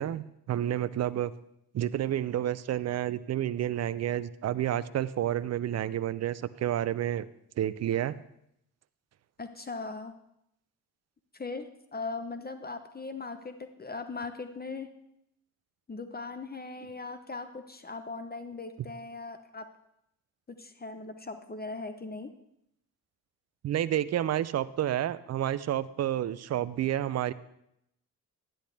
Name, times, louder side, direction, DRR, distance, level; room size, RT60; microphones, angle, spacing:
voice 1, 0.0-1.3 1.7-7.3 7.6-8.2 23.6-27.3, right 11 dB, 40° right, 17 dB, 0.5 m, -30 dB
voice 2, 9.4-10.1 11.3-14.9 15.9-19.7 20.5-22.3, left 3 dB, 20° left, 9 dB, 0.8 m, -39 dB
10.5 x 10.0 x 3.4 m, 0.77 s
hypercardioid pair, 50°, 42 cm